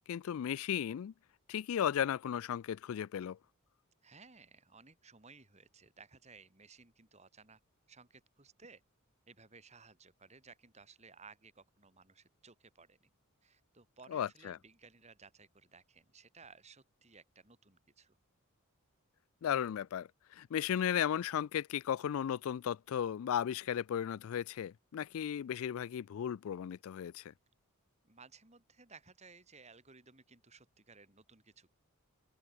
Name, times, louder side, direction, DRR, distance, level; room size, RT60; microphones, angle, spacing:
voice 1, 0.1-1.1 1.5-3.4 14.1-14.6 19.4-27.2, left 9 dB, 70° left, 0.3 m, -35 dB
voice 2, 4.0-7.6 7.9-8.8 9.3-13.1 13.4-18.2 28.0-31.7, right 4 dB, 30° right, 3.1 m, -59 dB
open air
head